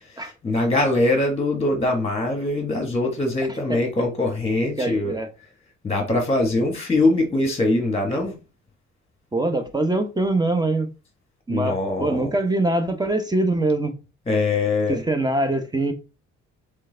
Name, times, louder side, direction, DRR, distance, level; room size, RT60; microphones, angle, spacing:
voice 1, 0.1-5.2 5.8-8.4 11.5-12.3 14.3-15.0, left 2 dB, 20° left, 1.2 m, -22 dB
voice 2, 4.8-5.3 9.3-10.9 11.5-13.9 14.9-15.9, right 2 dB, 15° right, 0.9 m, -23 dB
3.8 x 3.3 x 3.8 m
cardioid pair, 90°, 30 cm